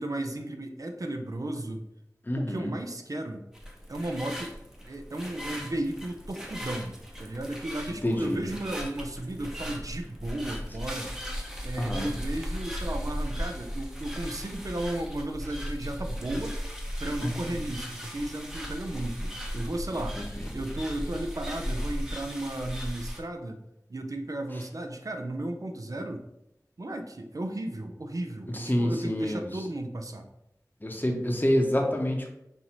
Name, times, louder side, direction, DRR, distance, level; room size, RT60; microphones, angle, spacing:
voice 1, 0.0-1.8 2.4-3.5 3.9-4.5 4.8-11.1 11.6-16.6 17.0-20.2 20.5-23.6 23.9-26.3 26.8-30.3, right 1 dB, 60° right, 5 dB, 0.5 m, -34 dB
voice 2, 2.3-2.7 8.0-8.4 11.8-12.1 17.2-17.3 20.2-20.3 28.6-29.5 30.8-32.3, left 1 dB, 30° left, 1 dB, 0.7 m, -27 dB
sound 1, 3.5-23.2, equal, 5° right, 0.8 m, -37 dB
5.6 x 2.6 x 2.9 m, 0.84 s
wide cardioid pair, 40°, 7 cm